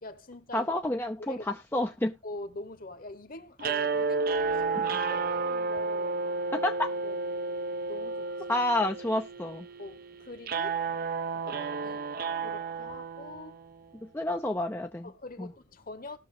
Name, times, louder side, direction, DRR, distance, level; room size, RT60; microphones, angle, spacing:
voice 1, 0.0-0.7 1.2-1.5 1.7-1.9 2.2-6.2 7.0-7.2 7.9-8.6 9.8-10.8 11.3-12.1 12.4-13.6 15.0-16.2, left 2 dB, 45° left, 1.2 m, -44 dB
voice 2, 0.5-2.1 4.8-4.9 6.5-6.9 8.5-9.7 14.0-15.1 15.4-15.5, left 1 dB, 10° left, 0.5 m, -29 dB
sound 1, 3.6-13.8, right 4 dB, 50° right, 0.6 m, -32 dB
18.5 x 6.3 x 2.6 m
head